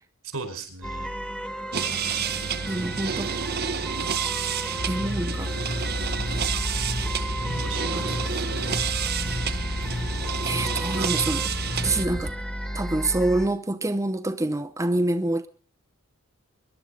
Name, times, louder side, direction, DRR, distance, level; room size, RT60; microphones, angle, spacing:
voice 1, 0.3-1.1 2.7-3.3 7.4-9.0, right 3 dB, 85° right, 4.8 m, -39 dB
sound 1, 0.8-13.5, equal, 5° left, 1.4 m, -34 dB
sound 2, 1.7-12.1, right 7 dB, 50° right, 0.9 m, -30 dB
voice 2, 2.7-3.3 4.9-5.5 7.9-8.2 10.4-11.5 11.8-12.3 12.7-15.5, right 2 dB, 15° right, 0.7 m, -26 dB
sound 3, 4.8-12.3, left 1 dB, 55° left, 3.1 m, -32 dB
22.0 x 11.0 x 5.1 m
head